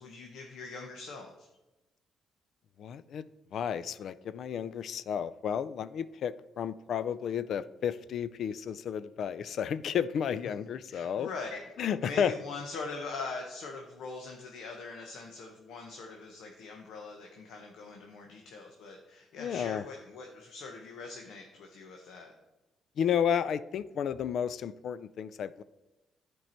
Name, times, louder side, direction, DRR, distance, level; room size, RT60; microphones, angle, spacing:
voice 1, 0.0-1.5 10.4-10.5 10.9-11.7 12.0-22.3, left 4 dB, 80° left, 2 dB, 1.0 m, -42 dB
voice 2, 2.8-11.3 11.8-12.3 19.4-19.8 23.0-25.6, left 8 dB, 65° left, 16 dB, 0.4 m, -32 dB
10.5 x 4.6 x 4.4 m, 1.0 s
cardioid pair, 90°, 0 cm